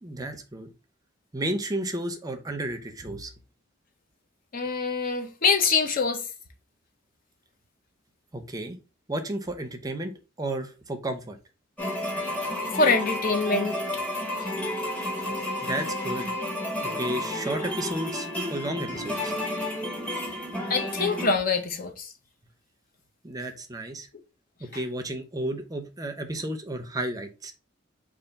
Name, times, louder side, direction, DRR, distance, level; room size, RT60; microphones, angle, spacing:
voice 1, 0.0-0.7 1.3-3.3 8.3-8.8 9.1-11.4 15.6-16.3 17.0-19.3 23.2-24.1 24.6-27.5, right 1 dB, 20° right, 0.5 m, -32 dB
voice 2, 4.5-6.2 12.7-13.8 14.4-14.5 20.7-22.1, left 4 dB, 45° left, 0.5 m, -24 dB
sound 1, 11.8-21.3, left 1 dB, 5° left, 0.9 m, -31 dB
3.4 x 2.5 x 3.9 m
head